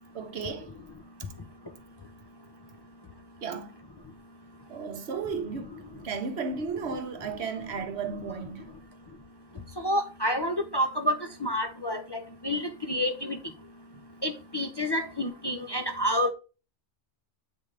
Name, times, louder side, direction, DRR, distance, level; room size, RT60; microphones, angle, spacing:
voice 1, 0.1-0.7 1.2-1.3 3.4-3.8 4.7-8.6 13.9-14.0, right 5 dB, 70° right, 1.1 m, -34 dB
voice 2, 9.8-11.1 11.4-12.2 12.4-13.4 14.2-16.3, equal, 30° left, 0.5 m, -28 dB
8.5 x 3.6 x 3.2 m
omnidirectional pair, 1.1 m